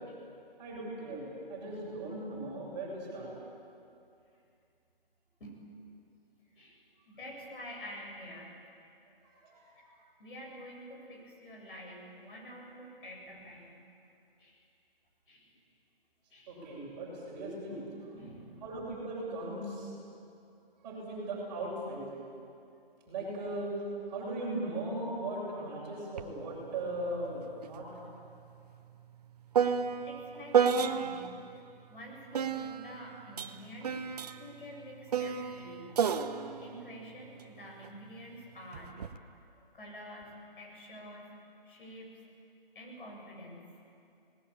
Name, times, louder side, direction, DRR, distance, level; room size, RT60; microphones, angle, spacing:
voice 1, 0.6-1.2 1.5-3.3 9.4-9.8 16.5-17.8 18.6-19.9 20.8-22.0 23.1-23.7 24.0-27.9, right 2 dB, 20° right, -5 dB, 7.3 m, -38 dB
voice 2, 5.4-5.9 6.5-8.5 10.2-13.8 14.4-14.6 15.3-15.5 16.3-16.9 18.0-18.7 30.0-31.4 31.9-34.0 34.4-36.0 36.6-39.0 39.7-41.3 41.6-42.2 42.7-43.7, equal, 60° left, -1 dB, 8.0 m, -48 dB
sound 1, 26.2-26.3 26.7-31.4 32.3-37.9 38.7-39.2, right 7 dB, 40° right, 1.0 m, -32 dB
26.5 x 19.5 x 8.6 m, 2.5 s
hypercardioid pair, 160°, 30 cm